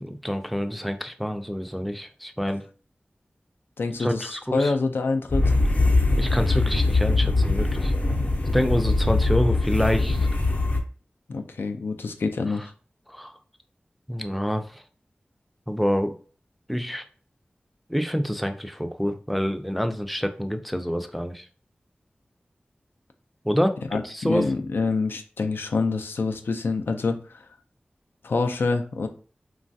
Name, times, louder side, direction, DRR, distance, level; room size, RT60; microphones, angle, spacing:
voice 1, 0.0-2.6 4.0-4.7 6.2-7.9 8.5-10.2 13.1-13.3 14.1-14.8 15.7-16.1 16.7-17.0 17.9-21.5 23.4-24.5, equal, ahead, 7 dB, 0.3 m, -27 dB
voice 2, 3.8-5.6 11.3-12.6 23.9-27.4 28.2-29.1, left 4 dB, 90° left, 6 dB, 0.3 m, -26 dB
sound 1, 5.3-10.8, left 2 dB, 45° left, 0.6 m, -22 dB
3.0 x 2.3 x 2.6 m, 0.40 s
wide cardioid pair, 55°, 4 cm